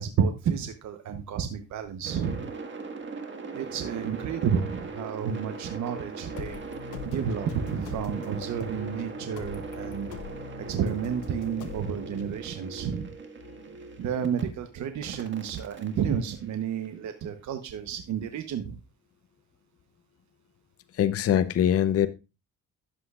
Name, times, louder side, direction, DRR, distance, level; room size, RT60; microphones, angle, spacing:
voice 1, 0.0-2.5 3.5-6.6 7.1-10.1 10.7-13.1 14.0-18.8, right 7 dB, 70° right, 0.9 m, -31 dB
sound 1, 2.0-14.4 15.0-17.1, right 4 dB, 40° right, 1.8 m, -40 dB
sound 2, 6.4-12.4, left 8 dB, 80° left, 0.8 m, -43 dB
voice 2, 6.9-7.4 20.9-22.1, left 10 dB, 50° left, 0.6 m, -25 dB
11.5 x 7.8 x 2.4 m
cardioid pair, 90°, 30 cm